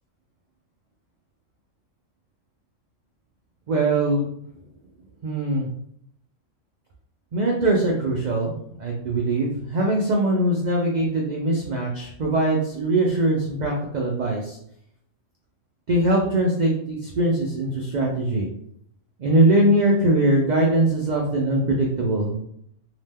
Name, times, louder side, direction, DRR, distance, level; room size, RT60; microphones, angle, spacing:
voice 1, 3.7-4.3 5.2-5.7 7.3-8.5 8.8-14.6 15.9-18.5 19.2-22.3, right 1 dB, 90° right, -2 dB, 0.4 m, -21 dB
2.8 x 2.1 x 3.3 m, 0.71 s
omnidirectional pair, 1.4 m